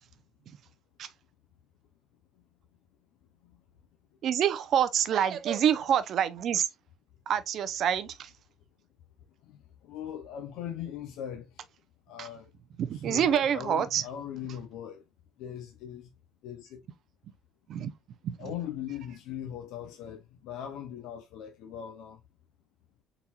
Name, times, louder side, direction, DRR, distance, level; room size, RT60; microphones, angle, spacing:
voice 1, 4.2-6.6 7.3-8.1 12.2-12.3 12.8-14.0 17.7-17.9 18.2-18.4, right 9 dB, 45° right, 0.5 m, -26 dB
voice 2, 9.5-11.5 12.1-12.5 12.9-15.0 15.4-16.1 16.4-16.8 18.4-22.2, left 9 dB, 80° left, 0.7 m, -40 dB
4.2 x 4.0 x 2.4 m
cardioid pair, 170°, 0 cm